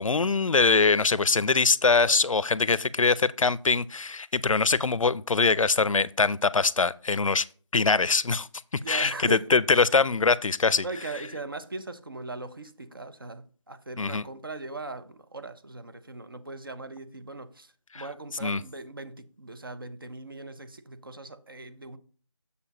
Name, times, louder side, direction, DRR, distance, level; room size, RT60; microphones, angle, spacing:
voice 1, 0.0-7.4 7.7-8.5 8.9-10.8 14.0-14.2 17.9-18.0 18.4-18.6, left 4 dB, 85° left, 0.5 m, -23 dB
voice 2, 2.0-2.4 8.8-9.5 10.8-22.0, right 2 dB, 45° right, 0.7 m, -39 dB
6.9 x 6.8 x 2.9 m
figure-of-eight pair, 175°, 16 cm